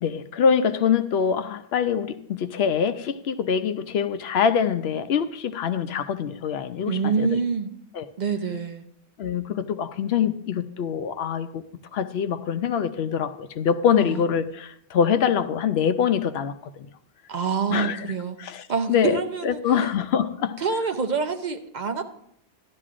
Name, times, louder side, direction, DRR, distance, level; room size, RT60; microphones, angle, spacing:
voice 1, 0.0-7.4 7.9-8.1 9.2-11.6 11.9-16.9 17.7-18.0 18.4-20.6, left 7 dB, 75° left, 0.8 m, -24 dB
voice 2, 6.9-7.7 8.2-8.8 14.0-14.2 17.3-18.4 18.7-19.9 20.6-22.1, right 5 dB, 50° right, 0.7 m, -26 dB
14.0 x 11.5 x 2.5 m
omnidirectional pair, 1.1 m